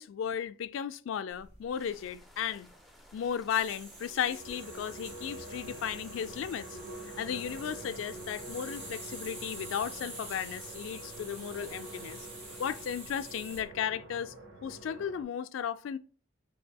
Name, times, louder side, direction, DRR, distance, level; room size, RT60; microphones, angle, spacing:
voice 1, 0.0-2.7 3.1-6.8 7.2-12.3 12.6-14.3 14.6-16.0, left 8 dB, 80° left, 0.3 m, -35 dB
sound 1, 1.3-13.7, right 2 dB, 30° right, 1.5 m, -48 dB
sound 2, 1.8-12.9, equal, ahead, 0.4 m, -59 dB
sound 3, 3.8-15.2, right 1 dB, 85° right, 1.0 m, -47 dB
5.3 x 2.7 x 2.2 m
head